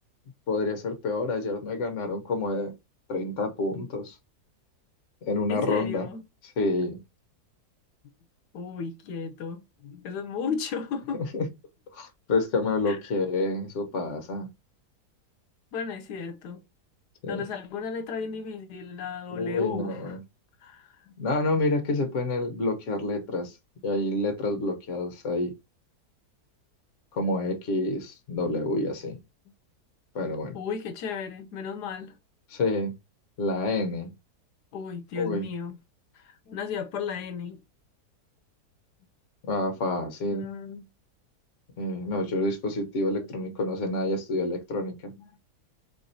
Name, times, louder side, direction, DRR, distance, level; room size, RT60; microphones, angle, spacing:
voice 1, 0.5-2.7 3.1-4.2 5.2-6.1 6.4-7.0 11.3-11.5 11.9-14.5 17.2-17.4 19.3-20.2 21.2-23.5 23.8-25.5 27.1-29.2 30.1-30.6 32.5-33.0 33.4-34.1 35.1-35.5 39.4-40.5 41.8-45.1, left 2 dB, 50° left, 1.2 m, -28 dB
voice 2, 5.5-6.2 8.5-11.2 12.9-13.0 15.7-16.6 17.3-20.2 20.6-21.1 24.5-24.6 30.5-32.2 34.7-35.8 36.1-37.6 40.3-40.9 43.2-43.3 45.2-45.3, left 6 dB, 80° left, 1.2 m, -35 dB
4.6 x 3.6 x 2.7 m
omnidirectional pair, 1.7 m